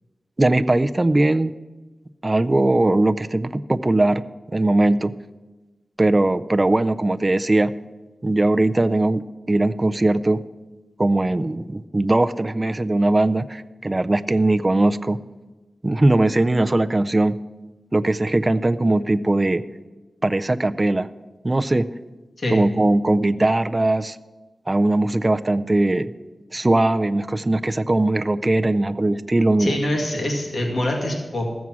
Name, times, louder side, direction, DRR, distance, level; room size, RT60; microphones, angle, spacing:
voice 1, 0.4-1.5 2.2-4.2 4.5-5.1 6.0-7.7 8.2-10.4 11.0-15.2 15.8-17.4 17.9-19.6 20.2-21.1 21.4-21.9 22.5-24.2 24.7-26.1 26.5-29.8, right 2 dB, 25° right, 10 dB, 0.4 m, -20 dB
voice 2, 29.6-31.5, left 1 dB, 55° left, 0 dB, 2.1 m, -24 dB
14.0 x 7.2 x 6.1 m, 1.2 s
wide cardioid pair, 85°, 0 cm